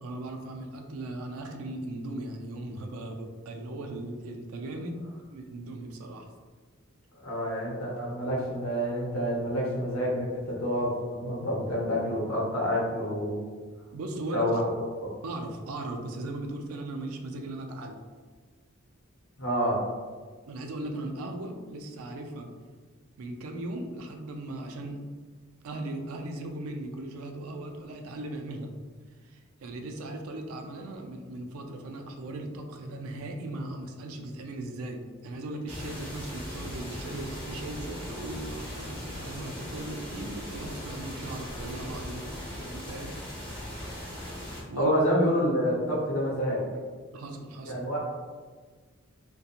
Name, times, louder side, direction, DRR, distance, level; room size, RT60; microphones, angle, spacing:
voice 1, 0.0-6.3 13.9-14.5 15.2-18.0 20.5-22.5 23.2-25.0 25.6-28.7 29.2-42.3 42.6-43.1 44.7-44.9 47.1-47.8, right 1 dB, 80° right, 3 dB, 0.4 m, -38 dB
voice 2, 7.2-13.4 14.3-14.6 15.0-15.1 19.4-19.8 44.8-46.7 47.7-48.0, equal, 80° left, -4 dB, 0.8 m, -28 dB
sound 1, 35.7-44.6, equal, 10° left, 1.0 m, -39 dB
2.8 x 2.2 x 2.4 m, 1.5 s
head